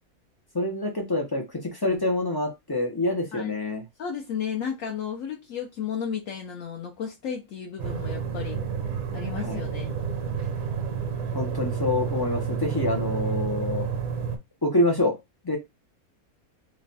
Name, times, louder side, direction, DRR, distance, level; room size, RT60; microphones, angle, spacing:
voice 1, 0.5-3.8 9.4-9.6 11.3-13.9 14.6-15.1 15.4-15.6, left 2 dB, 40° left, 0.3 m, -26 dB
voice 2, 4.0-8.6 9.1-9.9, left 7 dB, 65° left, 0.9 m, -33 dB
sound 1, 7.8-14.4, right 6 dB, 70° right, 1.1 m, -30 dB
3.1 x 2.2 x 3.9 m
omnidirectional pair, 1.6 m